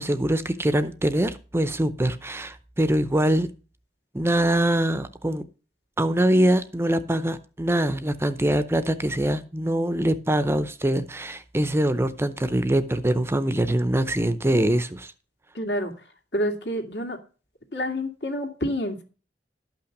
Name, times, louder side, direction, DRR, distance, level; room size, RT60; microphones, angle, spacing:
voice 1, 0.0-3.5 4.1-5.4 6.0-15.1, right 1 dB, 15° right, 0.6 m, -23 dB
voice 2, 15.5-16.1 16.3-17.2 17.7-19.0, equal, 70° left, 2.4 m, -28 dB
12.0 x 5.8 x 6.5 m
head